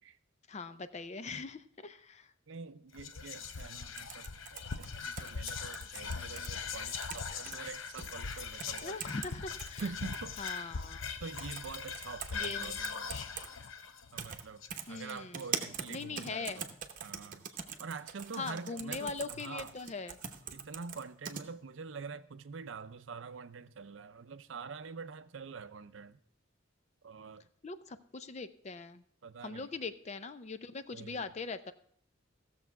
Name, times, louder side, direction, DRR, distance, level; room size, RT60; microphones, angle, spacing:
voice 1, 0.5-2.3 8.8-9.8 10.4-11.0 12.3-12.8 14.9-15.5 15.9-16.6 18.3-20.2 27.6-29.0 29.4-31.7, left 4 dB, 35° left, 0.5 m, -41 dB
voice 2, 2.5-9.0 9.8-10.4 11.2-13.1 14.1-14.6 14.9-16.7 17.0-19.7 20.5-26.2 27.0-27.5 29.2-29.7 30.9-31.2, right 5 dB, 70° right, 0.6 m, -45 dB
Whispering, 2.9-15.4, left 5 dB, 90° left, 0.8 m, -41 dB
sound 1, 4.0-6.5 6.9-7.6 8.0-8.1 8.6-9.3 9.6-10.6 11.4-11.7 11.9-13.5 14.2-14.4 14.7-21.4, right 7 dB, 45° right, 0.9 m, -42 dB
16.0 x 6.8 x 4.6 m
head